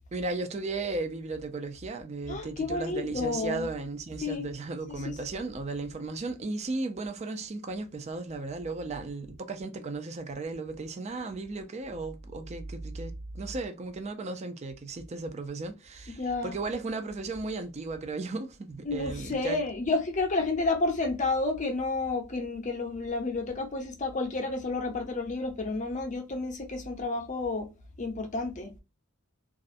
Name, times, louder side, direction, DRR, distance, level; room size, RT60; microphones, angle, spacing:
voice 1, 0.1-19.6, right 3 dB, 30° right, 0.4 m, -35 dB
voice 2, 2.3-3.7 4.2-4.5 5.0-5.2 16.2-16.5 18.9-27.7 28.0-28.7, left 3 dB, 35° left, 0.6 m, -30 dB
2.4 x 2.1 x 2.5 m
head